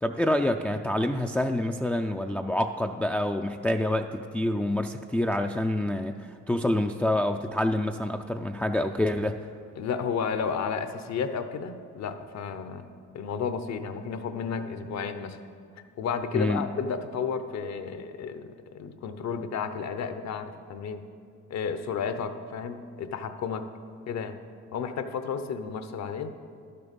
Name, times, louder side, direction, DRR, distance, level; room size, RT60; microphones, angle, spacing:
voice 1, 0.0-9.5 16.3-16.6, left 1 dB, 5° left, 4 dB, 0.3 m, -27 dB
voice 2, 9.8-12.9 13.1-15.4 16.0-21.0 21.5-23.7 24.1-24.4 24.7-26.3, left 6 dB, 60° left, 9 dB, 0.8 m, -32 dB
12.0 x 6.8 x 5.2 m, 2.4 s
cardioid pair, 90°, 30 cm